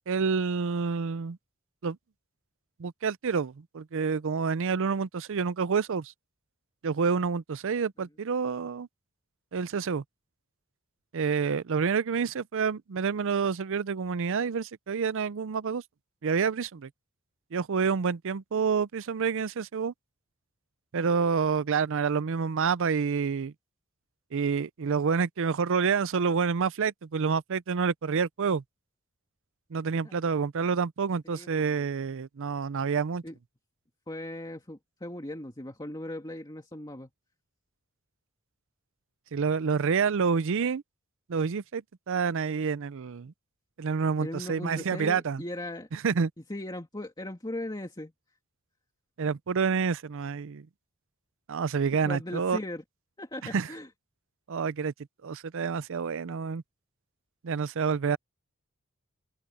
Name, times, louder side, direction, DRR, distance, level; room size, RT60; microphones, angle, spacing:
voice 1, 0.1-1.4 1.8-2.0 2.8-6.1 6.8-8.9 9.5-10.0 11.1-15.8 16.2-16.9 17.5-19.9 20.9-23.5 24.3-28.6 29.7-33.2 39.3-40.8 41.3-43.3 43.8-45.4 45.9-46.3 49.2-50.7 51.5-52.6 53.5-53.7 54.5-54.9 55.2-56.6 57.4-58.2, right 5 dB, 60° right, 0.5 m, -28 dB
voice 2, 31.2-31.8 33.2-33.4 34.1-37.1 44.2-45.9 46.5-48.1 51.9-52.8 53.2-53.9, left 1 dB, 20° left, 2.2 m, -38 dB
open air
head